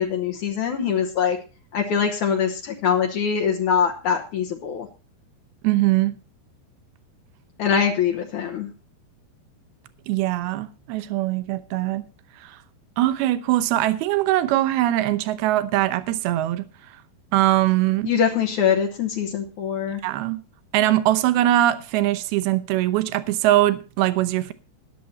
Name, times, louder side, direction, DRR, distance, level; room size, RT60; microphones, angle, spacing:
voice 1, 0.0-1.4 1.7-4.9 7.6-8.7 18.0-20.0, left 7 dB, 80° left, 1.7 m, -23 dB
voice 2, 5.6-6.2 10.1-12.1 12.4-12.6 13.0-16.7 17.3-18.1 20.0-20.4 20.7-24.5, right 15 dB, 75° right, 2.5 m, -21 dB
20.0 x 6.9 x 4.1 m
omnidirectional pair, 5.0 m